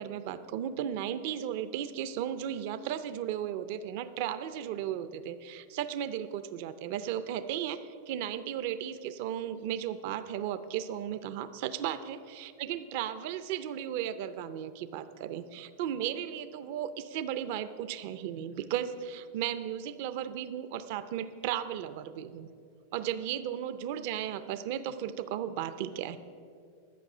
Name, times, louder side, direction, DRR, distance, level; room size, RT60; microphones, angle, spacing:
voice 1, 0.0-22.5 22.9-26.2, right 10 dB, 50° right, 11 dB, 0.5 m, -35 dB
11.5 x 8.2 x 6.0 m, 2.4 s
supercardioid pair, 160°, 0 cm